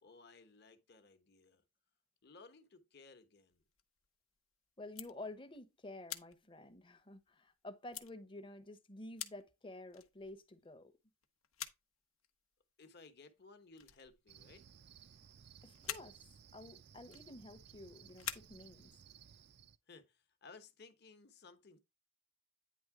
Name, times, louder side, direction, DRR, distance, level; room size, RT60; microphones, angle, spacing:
voice 1, 0.0-1.6 2.2-3.6 12.8-14.7 19.9-21.8, left 4 dB, 50° left, 1.1 m, -59 dB
sound 1, 3.5-4.4 4.8-5.6 6.1-7.5 7.9-8.1 8.8-8.9 9.2-9.5 9.9-10.7 11.2-11.9 12.2-12.6 13.2-13.5 13.7-14.8 15.1-15.4 15.6-17.8 18.1-19.1, left 10 dB, 85° left, 0.9 m, -48 dB
voice 2, 4.8-11.0 15.6-16.2 16.5-18.9, left 2 dB, 25° left, 0.8 m, -51 dB
Cricket, 14.3-19.8, right 8 dB, 50° right, 0.4 m, -60 dB
9.4 x 3.5 x 4.8 m
head